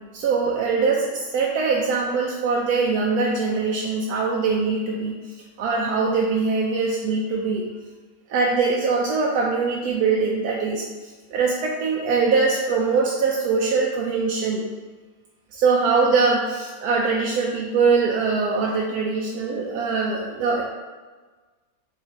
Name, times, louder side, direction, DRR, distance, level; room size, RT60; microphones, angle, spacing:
voice 1, 0.1-5.1 5.6-7.7 8.3-10.8 11.3-14.6 15.5-20.6, right 4 dB, 85° right, -2 dB, 1.1 m, -22 dB
4.5 x 3.2 x 3.6 m, 1.3 s
omnidirectional pair, 1.6 m